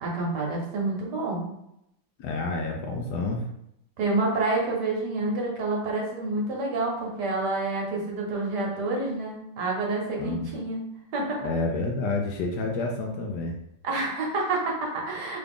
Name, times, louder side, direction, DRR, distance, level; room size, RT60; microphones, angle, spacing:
voice 1, 0.0-1.5 4.0-10.8 11.1-11.4 13.8-15.4, right 2 dB, 65° right, -1 dB, 1.4 m, -28 dB
voice 2, 2.2-3.4 10.2-10.5 11.4-13.5, left 3 dB, 70° left, 1 dB, 1.1 m, -29 dB
3.8 x 2.3 x 3.5 m, 0.78 s
omnidirectional pair, 2.0 m